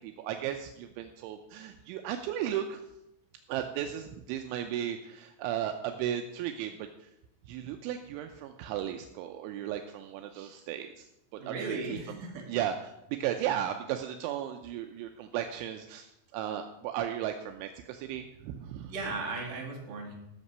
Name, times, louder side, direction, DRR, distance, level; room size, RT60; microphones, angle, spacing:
voice 1, 0.0-2.8 3.5-7.1 7.5-11.1 11.5-12.0 12.5-18.9, right 10 dB, 80° right, 6 dB, 3.0 m, -35 dB
voice 2, 11.3-12.5 13.3-13.4 18.9-20.2, right 3 dB, 45° right, -2 dB, 3.1 m, -37 dB
14.0 x 6.8 x 5.5 m, 0.87 s
omnidirectional pair, 5.6 m